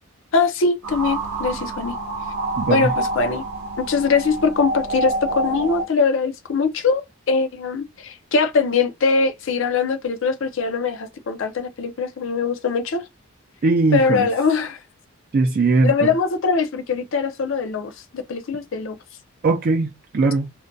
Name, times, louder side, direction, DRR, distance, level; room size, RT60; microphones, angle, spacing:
voice 1, 0.3-1.9 2.7-3.4 3.8-13.1 13.9-14.8 15.8-19.0, left 4 dB, 60° left, 0.5 m, -22 dB
sound 1, 0.8-5.8, right 2 dB, 90° right, 0.6 m, -27 dB
voice 2, 2.6-2.9 13.6-14.3 15.3-16.1 19.4-20.5, right 3 dB, 45° right, 0.3 m, -19 dB
2.4 x 2.1 x 2.5 m
head